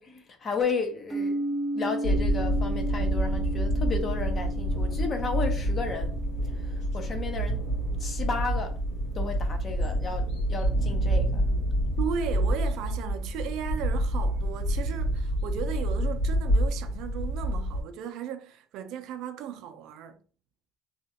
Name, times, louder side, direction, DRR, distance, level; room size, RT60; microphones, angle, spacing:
voice 1, 0.0-6.1 6.5-7.6 8.0-8.8 9.1-11.4, left 4 dB, 30° left, 0.6 m, -33 dB
sound 1, 1.1-8.9, right 1 dB, 15° right, 0.6 m, -35 dB
sound 2, 2.0-17.8, right 1 dB, 75° left, 1.6 m, -27 dB
voice 2, 12.0-20.2, right 8 dB, 65° right, 0.4 m, -36 dB
2.9 x 2.4 x 2.8 m
cardioid pair, 145°, 0 cm